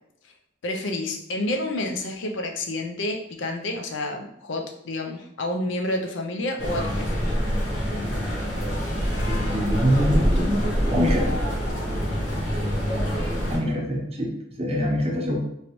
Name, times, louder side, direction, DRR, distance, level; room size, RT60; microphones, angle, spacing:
voice 1, 0.6-7.2, left 1 dB, 85° left, 3 dB, 0.5 m, -29 dB
sound 1, 6.6-13.6, equal, 70° left, 1.2 m, -25 dB
voice 2, 9.3-11.4 13.5-15.4, equal, 35° right, -1 dB, 0.7 m, -24 dB
3.1 x 2.6 x 3.0 m, 0.76 s
head